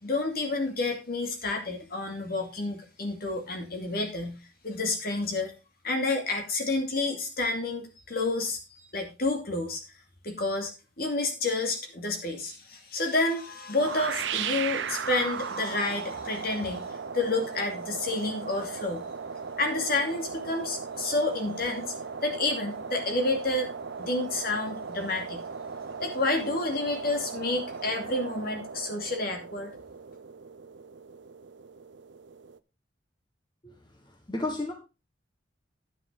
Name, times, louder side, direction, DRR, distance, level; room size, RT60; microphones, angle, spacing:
voice 1, 0.0-4.4 4.6-5.5 5.8-9.8 10.2-10.7 11.0-19.0 19.6-21.9 22.2-23.7 24.0-25.4 26.0-29.7, left 2 dB, 55° left, 2.5 m, -29 dB
sound 1, 13.8-32.6, right 6 dB, 75° right, 0.6 m, -37 dB
voice 2, 34.3-34.7, left 2 dB, 25° left, 1.4 m, -31 dB
9.9 x 9.6 x 3.8 m
head